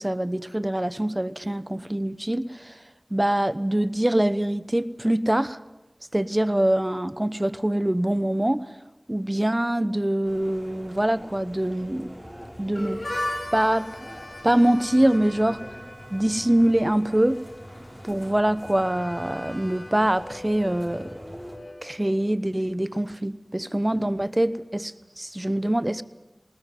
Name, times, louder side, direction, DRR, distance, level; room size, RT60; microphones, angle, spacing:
voice 1, 0.0-2.8 3.1-5.6 6.1-8.6 9.1-12.1 12.6-13.0 13.5-13.9 14.4-15.6 16.1-17.4 18.0-21.2 21.8-26.0, right 1 dB, 25° right, 1.0 m, -24 dB
sound 1, 10.2-21.6, equal, 5° right, 6.5 m, -44 dB
Harmonica, 12.7-22.4, left 1 dB, 85° left, 5.1 m, -39 dB
20.5 x 19.5 x 9.5 m
wide cardioid pair, 45°, 0 cm